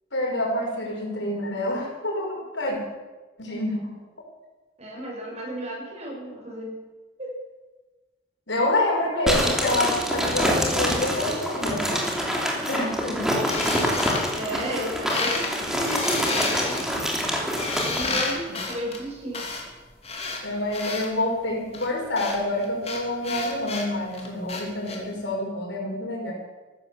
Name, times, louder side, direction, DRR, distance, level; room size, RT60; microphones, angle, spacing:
voice 1, 0.1-2.8 3.4-3.9 8.5-11.9 12.7-13.4 18.5-18.6 20.4-26.3, left 1 dB, 85° left, -1 dB, 5.3 m, -27 dB
voice 2, 4.8-6.8 7.2-7.4 14.3-16.9 17.7-19.5, equal, 35° right, -1 dB, 6.2 m, -33 dB
sound 1, 9.3-18.0, equal, 5° right, 3.2 m, -26 dB
sound 2, 13.5-14.8 15.1-15.5 15.8-21.1 21.7-25.0, left 3 dB, 35° left, 3.0 m, -31 dB
15.0 x 13.0 x 7.3 m, 1.2 s
head